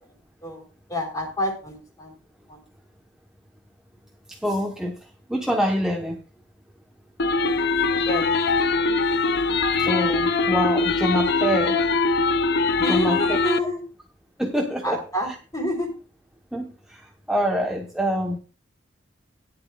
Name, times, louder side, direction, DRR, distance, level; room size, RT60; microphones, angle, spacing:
voice 1, 0.9-2.1 2.5-2.6 8.0-8.5 8.8-8.9 12.8-13.8 14.8-15.9, left 1 dB, 20° left, 2 dB, 3.6 m, -28 dB
voice 2, 4.3-5.0 5.3-6.2 9.8-11.8 12.9-13.4 14.4-15.0 16.5-18.4, equal, 5° right, 0 dB, 1.0 m, -25 dB
sound 1, 7.2-13.6, left 3 dB, 60° left, 0.6 m, -22 dB
17.0 x 10.5 x 2.4 m, 0.37 s
head